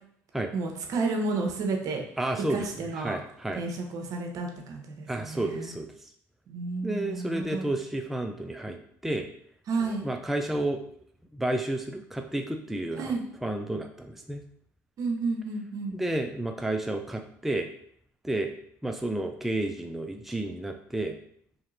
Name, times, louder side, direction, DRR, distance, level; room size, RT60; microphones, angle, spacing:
voice 1, 0.5-2.0 2.5-3.2 3.5-5.7 6.5-7.7 9.7-10.0 12.9-13.2 15.0-16.0, right 3 dB, 60° right, 3 dB, 0.8 m, -31 dB
voice 2, 2.2-3.6 5.1-5.9 6.8-9.3 9.9-10.8 11.3-13.1 13.4-14.4 15.9-17.7 18.2-18.5 18.8-21.2, right 1 dB, 5° right, 4 dB, 0.4 m, -31 dB
3.1 x 2.8 x 3.8 m, 0.65 s
supercardioid pair, 75°, 7 cm